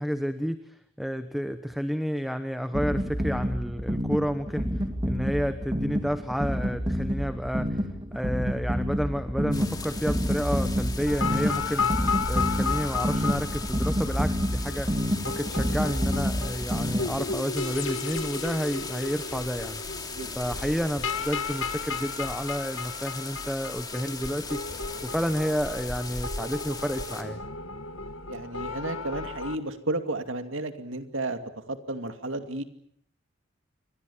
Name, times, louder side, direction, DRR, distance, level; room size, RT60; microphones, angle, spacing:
voice 1, 0.0-7.9 8.1-19.8 20.4-27.4, equal, ahead, 9 dB, 1.1 m, -30 dB
sound 1, 2.7-17.4, equal, 20° right, 2.7 m, -29 dB
sound 2, 9.5-27.2, left 4 dB, 20° left, 3.2 m, -38 dB
sound 3, 11.1-29.6, left 4 dB, 70° left, 2.0 m, -34 dB
voice 2, 28.3-32.6, right 2 dB, 65° right, 7 dB, 2.6 m, -33 dB
29.0 x 24.0 x 7.2 m, 0.67 s
head